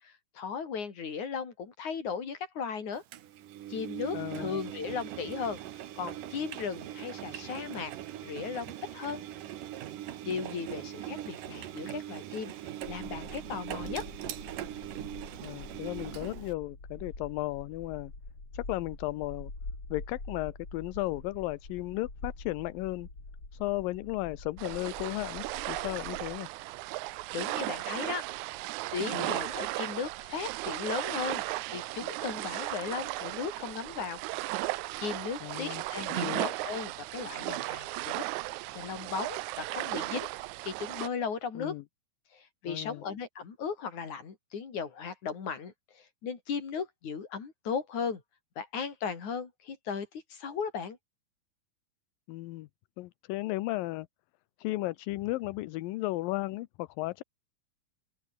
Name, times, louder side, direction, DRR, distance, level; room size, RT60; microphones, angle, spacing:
voice 1, 0.0-3.0 3.7-5.6 6.0-7.9 8.2-9.2 10.2-12.5 12.9-14.1 27.3-28.3 28.9-31.4 31.7-34.2 34.5-34.6 35.0-38.2 38.7-40.3 40.6-41.7 42.3-48.2 48.6-51.0, left 6 dB, 55° left, 5.1 m, -36 dB
Engine, 3.1-16.5, right 12 dB, 70° right, 2.9 m, -41 dB
voice 2, 4.1-4.6 15.4-18.1 18.5-19.5 19.9-23.1 23.5-26.5 29.1-29.3 35.4-35.8 36.2-36.5 41.6-41.8 42.7-43.0 52.3-52.7 53.0-54.1 54.6-57.2, left 19 dB, 80° left, 2.4 m, -35 dB
sound 1, 12.8-26.4, left 2 dB, 30° left, 7.6 m, -46 dB
sound 2, 24.6-41.1, right 19 dB, 85° right, 1.7 m, -36 dB
open air
omnidirectional pair, 4.1 m